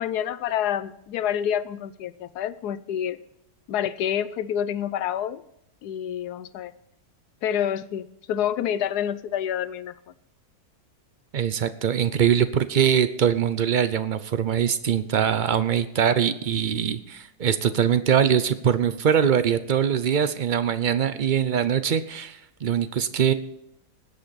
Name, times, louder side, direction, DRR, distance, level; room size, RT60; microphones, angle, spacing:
voice 1, 0.0-3.2 3.7-5.4 5.8-6.7 7.4-9.9, left 9 dB, 80° left, 15 dB, 1.2 m, -28 dB
voice 2, 11.3-23.3, right 8 dB, 70° right, 12 dB, 0.4 m, -22 dB
19.5 x 8.4 x 4.1 m, 0.80 s
omnidirectional pair, 1.7 m